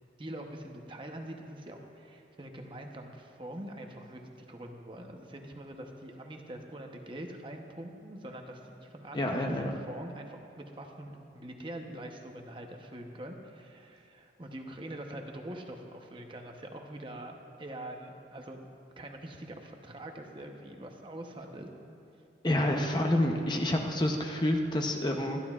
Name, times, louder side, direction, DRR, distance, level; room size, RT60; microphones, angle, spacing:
voice 1, 0.2-18.7 19.0-21.7, right 1 dB, 30° right, 3 dB, 0.9 m, -44 dB
voice 2, 9.1-9.7 22.4-25.4, left 1 dB, 25° left, 2 dB, 0.7 m, -28 dB
25.0 x 11.0 x 2.4 m, 2.6 s
head